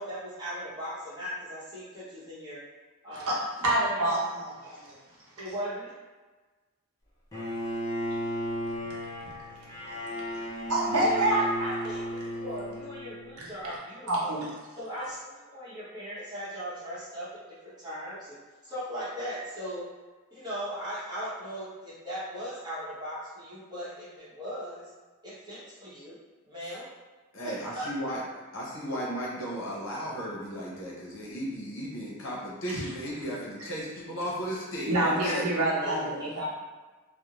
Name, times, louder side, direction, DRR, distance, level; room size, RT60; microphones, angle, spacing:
voice 1, 0.0-2.6 3.0-3.3 3.9-4.7 5.4-5.9 10.9-14.4 14.8-17.3 17.6-18.3 18.6-19.8 20.3-24.9 25.2-26.2 26.4-26.8 27.4-27.9 35.8-36.4, equal, 20° right, -11 dB, 0.9 m, -38 dB
voice 2, 3.1-4.9 10.7-11.4 13.4-13.5 14.1-14.5 34.9-36.4, right 1 dB, 85° right, -5 dB, 0.8 m, -27 dB
Bowed string instrument, 7.3-13.4, equal, 15° left, 0.4 m, -34 dB
voice 3, 27.3-28.2 28.5-35.5, equal, 65° left, -5 dB, 0.7 m, -35 dB
2.5 x 2.0 x 2.9 m, 1.3 s
head